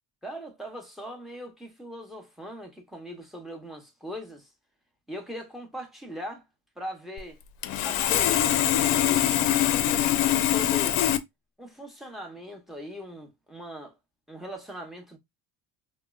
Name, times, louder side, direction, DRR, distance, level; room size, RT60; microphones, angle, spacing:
voice 1, 0.2-4.5 5.1-6.4 6.8-7.4 7.8-11.0 11.6-13.9 14.3-15.2, equal, ahead, 0.7 m, -40 dB
Sawing, 7.2-7.3 7.6-11.2, left 12 dB, 90° left, 0.5 m, -23 dB
4.1 x 2.0 x 2.3 m
cardioid pair, 140°, 41 cm